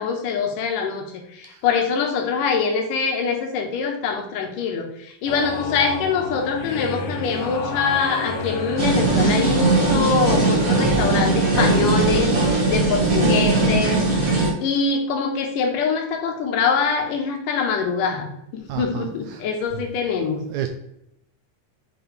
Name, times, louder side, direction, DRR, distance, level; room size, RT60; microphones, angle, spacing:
voice 1, 0.0-14.3 14.6-20.4, left 5 dB, 90° left, 3 dB, 2.7 m, -24 dB
sound 1, 5.3-12.1, left 2 dB, 60° left, 1.8 m, -30 dB
sound 2, 8.8-14.5, right 3 dB, 35° right, 1.7 m, -19 dB
voice 2, 18.7-19.4 19.7-19.8 20.5-20.7, right 11 dB, 80° right, 6 dB, 1.7 m, -31 dB
7.6 x 5.0 x 3.2 m, 0.78 s
omnidirectional pair, 3.7 m